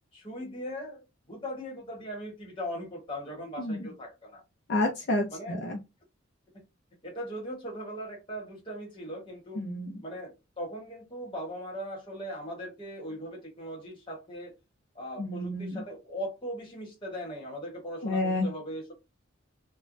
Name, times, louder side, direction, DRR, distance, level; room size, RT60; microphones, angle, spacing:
voice 1, 0.1-4.4 5.3-5.6 6.5-6.6 7.0-9.6 10.0-14.5 14.9-18.9, equal, 25° left, 1.2 m, -39 dB
voice 2, 3.6-3.9 4.7-5.8 9.6-10.0 15.2-15.8 18.0-18.5, left 2 dB, 50° left, 0.5 m, -30 dB
3.1 x 2.2 x 2.5 m
head